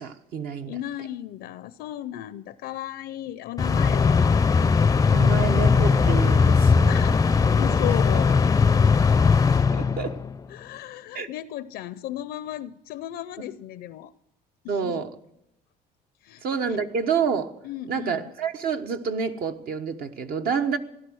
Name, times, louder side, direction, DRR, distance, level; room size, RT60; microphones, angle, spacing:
voice 1, 0.0-0.7 5.1-7.0 10.0-10.1 11.1-11.3 14.7-15.1 16.4-17.5 17.9-20.8, right 6 dB, 65° right, 6 dB, 1.2 m, -28 dB
voice 2, 0.6-4.5 6.9-7.1 7.5-8.5 9.7-10.1 10.5-14.1 14.6-15.0 16.2-16.4 16.7-16.8 17.6-18.3, left 13 dB, 85° left, 15 dB, 0.5 m, -35 dB
sound 1, 3.6-10.4, left 5 dB, 20° left, 0.4 m, -19 dB
sound 2, 4.4-9.1, right 2 dB, 15° right, 0.8 m, -36 dB
16.5 x 11.5 x 6.3 m, 0.82 s
cardioid pair, 110°, 17 cm